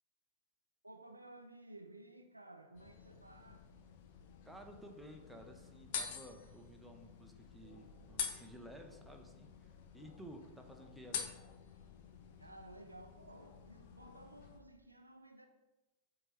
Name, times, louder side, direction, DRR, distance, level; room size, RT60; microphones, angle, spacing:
voice 1, 0.8-3.7 12.4-15.5, right 1 dB, 85° right, 0.4 m, -55 dB
sound 1, 2.7-14.6, left 7 dB, 50° left, 0.6 m, -48 dB
voice 2, 4.4-11.3, equal, ahead, 0.8 m, -54 dB
7.7 x 2.9 x 4.5 m
figure-of-eight pair, 90°, 0 cm